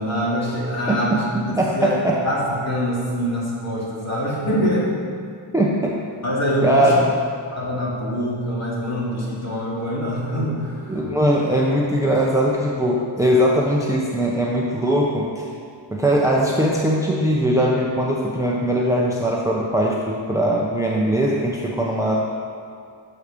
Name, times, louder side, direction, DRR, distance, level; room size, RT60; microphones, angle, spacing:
voice 1, 0.0-1.2 1.7-2.0 2.2-4.9 6.2-6.9 7.5-11.0, equal, 35° left, -6 dB, 2.6 m, -24 dB
voice 2, 1.3-2.2 5.5-6.0 6.6-7.1 10.9-15.4 15.9-22.2, equal, 5° right, -3 dB, 0.7 m, -20 dB
8.2 x 6.5 x 6.8 m, 2.3 s
wide cardioid pair, 160°, 45 cm